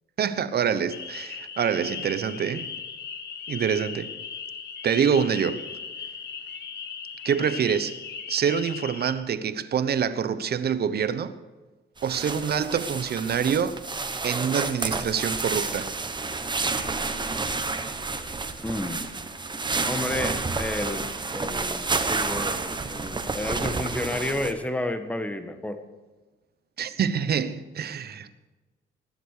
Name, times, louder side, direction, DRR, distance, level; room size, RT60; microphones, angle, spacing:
voice 1, 0.2-2.7 3.5-4.1 4.8-5.6 7.2-8.0 8.3-11.3 12.0-13.7 14.2-15.9 26.8-28.3, right 7 dB, 55° right, 1.0 m, -26 dB
sound 1, 0.9-9.1, left 6 dB, 60° left, 1.7 m, -38 dB
sound 2, 12.0-24.5, right 3 dB, 20° right, 1.2 m, -30 dB
voice 2, 18.6-19.0 19.8-25.8, left 1 dB, 5° left, 1.5 m, -31 dB
19.5 x 7.8 x 6.7 m
cardioid pair, 90°, 20 cm